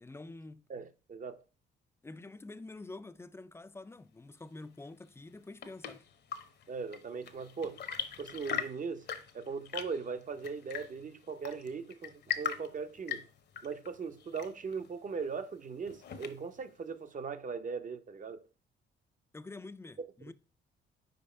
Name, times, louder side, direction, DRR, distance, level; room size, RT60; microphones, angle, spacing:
voice 1, 0.0-0.6 2.0-6.1 19.3-20.3, left 2 dB, 15° left, 0.4 m, -47 dB
voice 2, 0.7-1.4 6.7-7.8 8.2-9.1 9.3-13.3 13.6-18.4, right 5 dB, 40° right, 0.7 m, -39 dB
Chirp tweet / Engine / Tap, 5.2-16.7, left 8 dB, 60° left, 0.8 m, -42 dB
5.2 x 4.6 x 4.3 m
cardioid pair, 90°, 20 cm